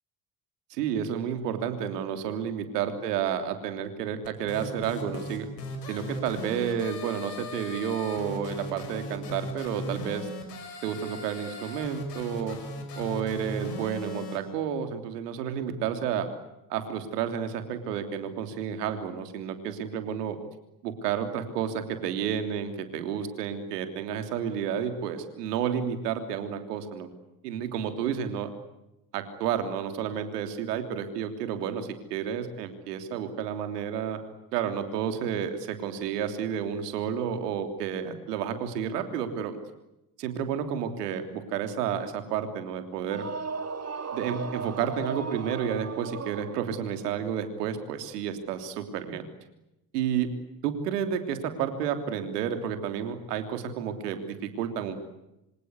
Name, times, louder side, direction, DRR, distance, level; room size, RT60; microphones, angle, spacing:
voice 1, 0.7-5.5 5.9-10.3 10.8-12.6 13.0-16.3 16.7-20.4 20.8-27.1 27.4-28.5 29.1-34.2 34.5-39.6 40.2-43.3 44.1-49.2 49.9-50.3 50.6-55.0, right 8 dB, 80° right, 7 dB, 3.3 m, -31 dB
sound 1, 4.2-14.4, left 2 dB, 85° left, 5.9 m, -38 dB
sound 2, 43.0-47.0, right 5 dB, 30° right, 3.0 m, -36 dB
26.5 x 26.0 x 8.2 m, 0.90 s
hypercardioid pair, 55°, 47 cm